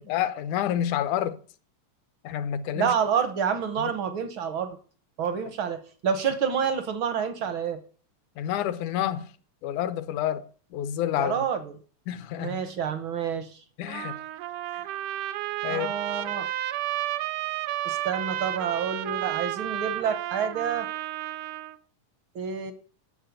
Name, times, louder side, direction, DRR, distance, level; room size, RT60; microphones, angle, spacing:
voice 1, 0.1-1.4 2.2-2.9 3.8-3.9 8.4-9.3 9.6-10.5 10.7-11.4 12.1-12.6 13.8-14.2 15.6-15.9, left 11 dB, 75° left, 2.3 m, -28 dB
voice 2, 2.7-4.8 5.2-7.8 11.2-11.7 12.3-13.6 14.7-14.8 15.7-16.5 17.8-20.9 22.3-22.7, right 7 dB, 65° right, 1.3 m, -28 dB
Trumpet, 13.9-21.8, right 13 dB, 85° right, 2.3 m, -32 dB
11.0 x 7.5 x 9.2 m
omnidirectional pair, 3.6 m